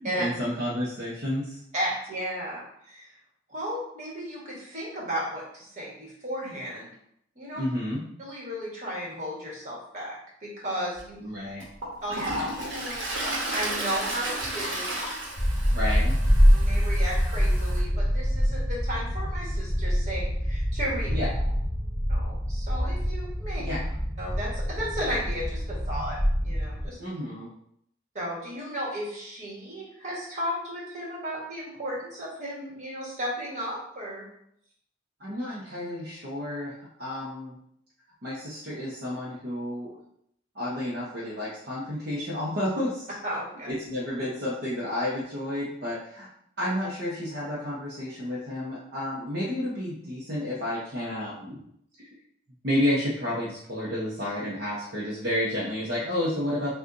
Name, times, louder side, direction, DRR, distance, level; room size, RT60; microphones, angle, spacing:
voice 1, 0.0-1.6 7.6-8.0 11.2-11.6 15.7-16.1 21.1-21.5 23.6-23.8 27.0-27.5 35.2-36.7 37.0-37.6 38.2-39.9 40.5-43.1 43.7-46.3 46.6-51.6 52.6-56.8, left 1 dB, 55° right, -7 dB, 0.8 m, -31 dB
voice 2, 1.7-3.1 3.5-6.9 7.3-7.6 8.2-11.2 12.0-14.9 15.7-15.8 16.5-21.1 22.1-23.6 24.2-27.0 28.1-34.2 43.2-43.7, equal, 40° right, -4 dB, 1.5 m, -34 dB
Toilet flush, 11.0-11.1 11.6-17.8, right 1 dB, 85° right, 1.1 m, -33 dB
sound 1, 15.3-26.9, equal, 10° left, 1.5 m, -25 dB
6.4 x 2.4 x 2.6 m, 0.72 s
head